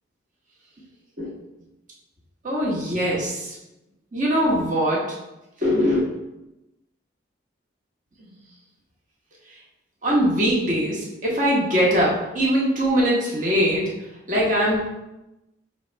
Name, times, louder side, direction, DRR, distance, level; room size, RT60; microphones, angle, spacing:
voice 1, 2.4-3.6 4.1-5.2 5.6-6.0 8.2-8.3 9.5-9.6 10.0-14.0 14.3-14.9, equal, 40° right, -4 dB, 1.0 m, -22 dB
3.5 x 3.1 x 4.4 m, 0.94 s
head